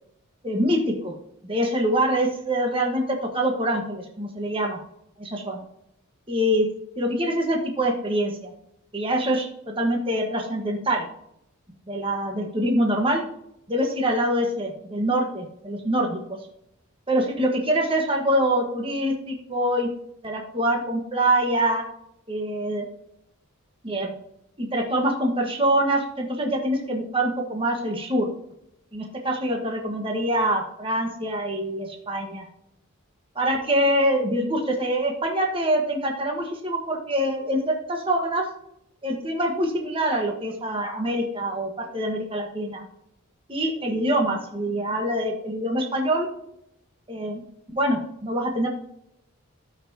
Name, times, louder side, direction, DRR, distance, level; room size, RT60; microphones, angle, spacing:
voice 1, 0.4-1.1 1.4-4.8 5.2-5.6 6.3-6.7 7.0-8.5 8.9-11.1 11.9-13.2 13.7-16.4 17.1-19.9 20.2-21.8 22.3-22.9 23.8-24.1 24.6-28.3 28.9-32.5 33.3-38.4 39.0-42.8 43.5-46.3 47.1-47.4 47.7-48.7, right 1 dB, 25° right, 1 dB, 1.3 m, -25 dB
17.0 x 5.8 x 2.8 m, 0.77 s
head